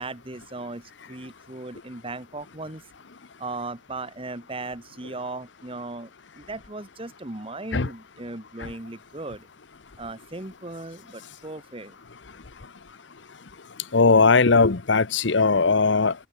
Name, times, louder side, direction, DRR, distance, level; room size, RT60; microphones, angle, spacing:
voice 1, 0.0-2.8 3.4-9.5 10.0-11.9, right 2 dB, 30° right, 1.6 m, -37 dB
voice 2, 13.9-16.1, left 4 dB, 80° left, 1.0 m, -19 dB
head